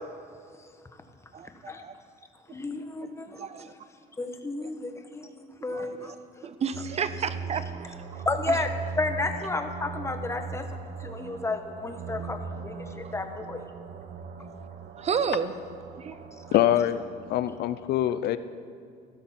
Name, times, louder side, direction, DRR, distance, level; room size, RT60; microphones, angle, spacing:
voice 1, 1.3-1.9 3.0-3.1 3.4-3.7 4.6-4.7 5.7-6.2 6.4-8.0 8.5-8.6 15.0-15.6 16.0-16.2, right 6 dB, 40° right, 12 dB, 0.6 m, -32 dB
voice 2, 2.5-3.3 4.2-6.1 8.2-8.7 9.0-10.7 11.0-13.6, left 3 dB, 15° left, 6 dB, 1.2 m, -32 dB
sound 1, 6.7-17.8, right 5 dB, 70° right, 1.1 m, -39 dB
voice 3, 16.5-17.0 17.3-18.4, left 12 dB, 70° left, 13 dB, 0.6 m, -24 dB
15.5 x 13.0 x 4.4 m, 2.3 s
cardioid pair, 110°, 17 cm